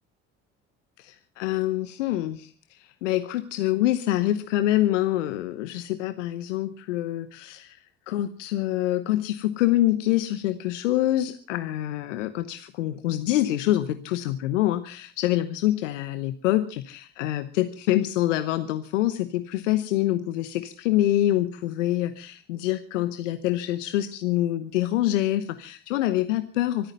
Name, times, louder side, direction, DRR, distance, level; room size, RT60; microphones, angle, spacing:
voice 1, 1.0-7.8 8.1-26.9, left 14 dB, 85° left, 11 dB, 1.0 m, -26 dB
25.0 x 9.1 x 5.4 m, 0.39 s
hypercardioid pair, 60°, 36 cm